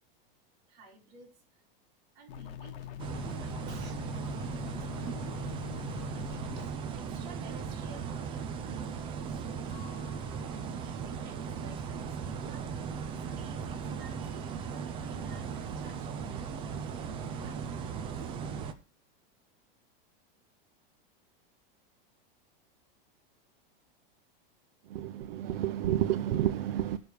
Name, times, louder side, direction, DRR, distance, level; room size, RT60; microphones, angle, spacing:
voice 1, 0.7-1.6 2.1-2.9 3.4-4.0 4.6-9.7 10.4-13.0 13.3-18.4, right 4 dB, 45° right, -1 dB, 3.6 m, -55 dB
sound 1, 2.3-6.7, left 10 dB, 80° left, 1.3 m, -43 dB
sound 2, 3.0-18.7, right 6 dB, 20° right, 0.5 m, -37 dB
Chink clink, 9.7-14.1 14.3-15.1, left 7 dB, 65° left, 1.8 m, -59 dB
voice 2, 24.9-27.0, right 11 dB, 85° right, 9 dB, 0.8 m, -30 dB
19.0 x 6.5 x 3.2 m, 0.36 s
supercardioid pair, 170°, 29 cm